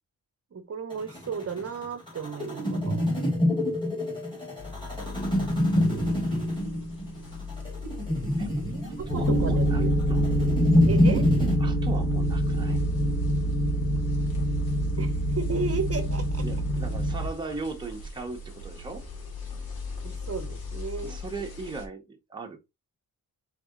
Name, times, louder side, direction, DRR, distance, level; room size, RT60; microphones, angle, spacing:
voice 1, 0.5-3.0 9.1-9.9 10.9-11.3 15.0-16.4 20.0-21.2, right 5 dB, 40° right, 0.7 m, -34 dB
sound 1, 0.9-11.6, left 1 dB, 15° left, 2.5 m, -26 dB
sound 2, 4.6-21.9, left 3 dB, 80° left, 1.7 m, -41 dB
voice 2, 8.4-9.8 10.1-10.3 11.6-12.8 16.4-19.0 21.0-22.6, right 3 dB, 10° right, 0.8 m, -38 dB
sound 3, 9.1-17.3, equal, 30° left, 1.1 m, -25 dB
4.0 x 3.6 x 3.6 m
wide cardioid pair, 170°, 37 cm